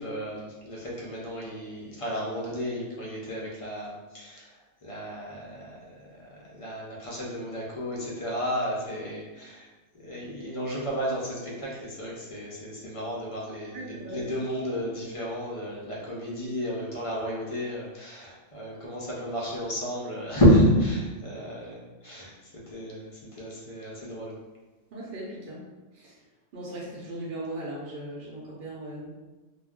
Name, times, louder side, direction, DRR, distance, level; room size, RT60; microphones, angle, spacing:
voice 1, 0.0-4.5 4.8-9.7 10.0-24.3, equal, 40° left, -4 dB, 0.5 m, -30 dB
voice 2, 13.7-14.2 21.4-21.5 24.9-25.7 25.9-26.2 26.5-29.1, right 1 dB, 55° right, -5 dB, 0.8 m, -38 dB
2.2 x 2.2 x 3.5 m, 1.2 s
omnidirectional pair, 1.3 m